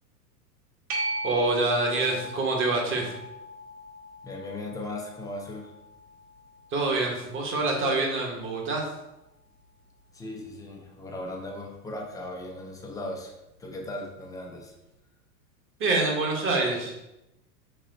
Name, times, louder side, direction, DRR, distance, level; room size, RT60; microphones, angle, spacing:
sound 1, 0.9-8.1 13.6-13.7, right 1 dB, 55° right, 1.4 m, -38 dB
voice 1, 1.2-3.1 6.7-8.9 15.8-17.0, right 3 dB, 25° right, 0 dB, 1.2 m, -26 dB
voice 2, 4.2-5.7 10.1-13.3 13.6-14.7, left 1 dB, 10° left, 0 dB, 0.5 m, -37 dB
4.2 x 3.1 x 3.9 m, 0.92 s
hypercardioid pair, 110°, 48 cm